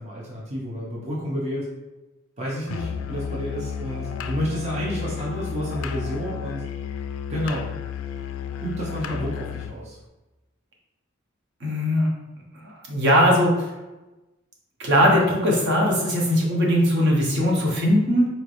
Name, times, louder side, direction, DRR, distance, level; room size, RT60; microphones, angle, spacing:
voice 1, 0.0-1.7 2.4-6.6 7.3-7.7 8.6-10.0, equal, 35° right, -6 dB, 0.6 m, -30 dB
Musical instrument, 2.7-9.8, left 7 dB, 80° left, 0.3 m, -32 dB
voice 2, 11.6-12.1 12.6-13.7 14.8-18.3, equal, 60° right, -2 dB, 0.8 m, -20 dB
4.0 x 3.2 x 2.5 m, 1.1 s
head